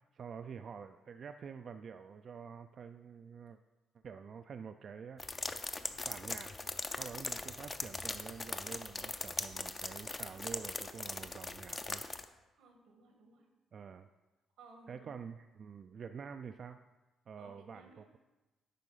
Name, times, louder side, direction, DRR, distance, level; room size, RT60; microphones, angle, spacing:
voice 1, 0.0-3.6 4.0-5.2 5.9-6.5 7.0-12.0 13.7-14.1 14.9-16.8 17.3-18.2, right 6 dB, 50° right, 8 dB, 0.3 m, -48 dB
sound 1, 5.2-12.3, left 3 dB, 25° left, 0.5 m, -40 dB
voice 2, 12.6-13.5 14.6-15.1 17.4-18.0, right 3 dB, 90° right, 3 dB, 1.5 m, -59 dB
9.1 x 3.7 x 5.5 m, 1.1 s
cardioid pair, 90°, 0 cm